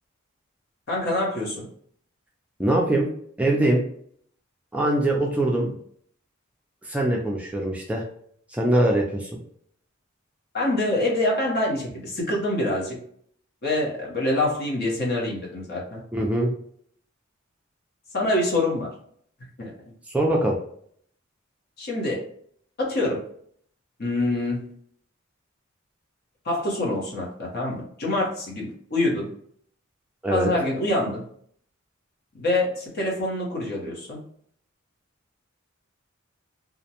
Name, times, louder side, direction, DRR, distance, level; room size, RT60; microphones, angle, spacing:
voice 1, 0.9-1.7 5.6-5.7 10.5-13.0 13.6-16.0 18.1-18.9 19.6-19.7 21.8-22.2 22.8-23.2 24.0-24.6 26.4-29.3 30.3-31.2 32.3-34.2, left 1 dB, 50° left, -2 dB, 0.8 m, -25 dB
voice 2, 2.6-3.1 3.4-3.8 4.7-5.7 6.8-8.0 8.5-9.3 16.1-16.5 20.1-20.6 30.2-30.5, right 1 dB, 5° right, -1 dB, 0.3 m, -22 dB
2.4 x 2.1 x 2.8 m, 0.63 s
head